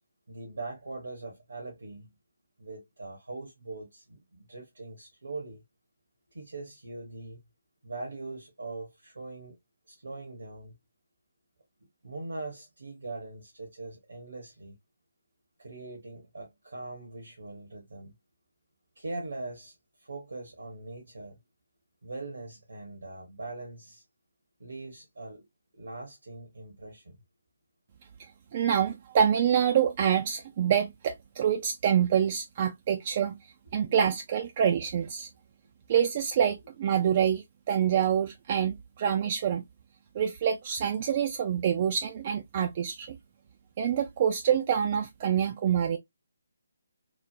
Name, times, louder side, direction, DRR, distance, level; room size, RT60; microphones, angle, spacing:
voice 1, 0.3-2.1 2.6-5.6 6.3-7.4 7.8-9.6 9.9-10.8 12.0-14.7 15.6-18.1 19.0-21.4 22.0-24.0 24.6-25.5 25.7-27.2, right 2 dB, 70° right, 0.9 m, -41 dB
voice 2, 28.2-35.3 35.9-39.6 40.1-43.2 43.8-46.0, right 8 dB, 35° right, 0.3 m, -26 dB
3.1 x 2.0 x 2.4 m
figure-of-eight pair, 145°, 0 cm